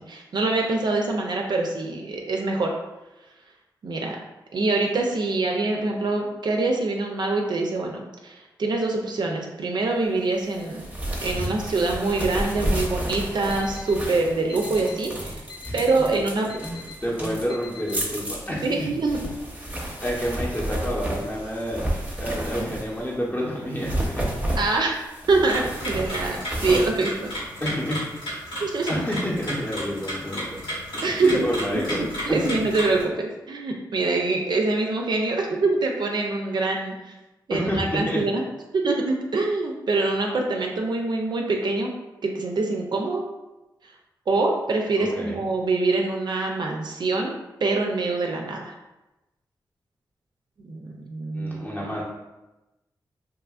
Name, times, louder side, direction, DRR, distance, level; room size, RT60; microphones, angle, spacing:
voice 1, 0.1-2.7 3.8-4.2 4.5-10.8 11.2-15.4 15.7-16.5 18.6-19.2 22.6-22.7 24.6-25.0 25.3-27.1 28.6-29.1 31.0-31.4 32.0-37.1 37.5-38.4 38.7-41.9 42.2-43.2 44.3-47.4 47.6-48.7 50.6-51.6, right 3 dB, 60° right, 1 dB, 0.4 m, -24 dB
sound 1, 10.5-23.1 23.7-28.0, right 1 dB, 15° right, 0.6 m, -31 dB
Alarm, 13.5-13.9 14.5-14.9 15.5-15.9 16.5-16.9 17.5-17.9, left 6 dB, 60° left, 0.5 m, -42 dB
voice 2, 16.7-18.9 20.0-21.8 22.2-24.2 27.6-28.0 28.9-32.6 37.5-38.2 45.0-45.4 51.3-52.0, equal, 20° left, -4 dB, 0.6 m, -29 dB
sound 2, 25.3-33.0, equal, 90° left, 1.2 m, -33 dB
2.7 x 2.4 x 2.3 m, 1.0 s
cardioid pair, 45°, 8 cm